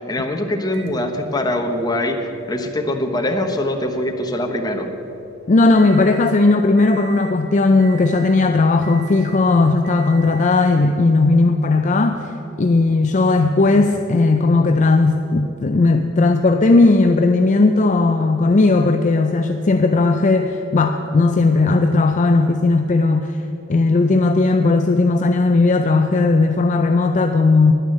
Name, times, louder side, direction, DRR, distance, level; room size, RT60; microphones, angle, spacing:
voice 1, 0.0-4.9, left 1 dB, 20° left, 4 dB, 1.0 m, -23 dB
Microwave oven, 0.7-6.4 6.8-7.4 7.8-8.4 8.8-9.4 9.8-10.7 11.6-11.7 13.7-13.8, right 9 dB, 55° right, 1.2 m, -43 dB
voice 2, 5.5-23.4 23.7-27.7, left 3 dB, 35° left, 6 dB, 0.5 m, -16 dB
10.5 x 9.8 x 7.7 m, 2.9 s
head